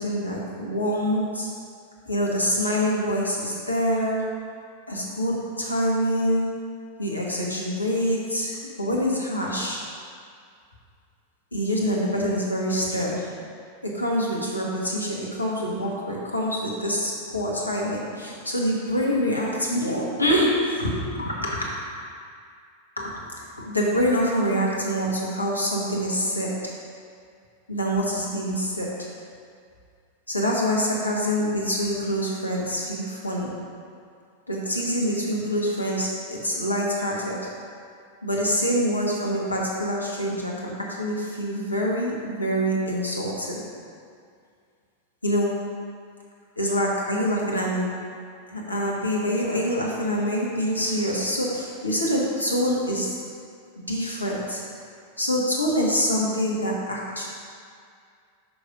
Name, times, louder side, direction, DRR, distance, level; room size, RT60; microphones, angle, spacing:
voice 1, 0.0-1.5 2.1-4.2 4.9-6.5 7.0-9.8 11.5-13.3 13.8-21.8 23.0-23.1 23.6-26.7 27.7-29.0 30.3-33.5 34.5-37.5 38.2-43.6 45.2-45.6 46.6-48.0 48.5-53.1 53.9-54.6 55.2-57.3, equal, 80° left, -3 dB, 1.2 m, -25 dB
6.0 x 5.0 x 5.2 m, 2.3 s
figure-of-eight pair, 90°, 0 cm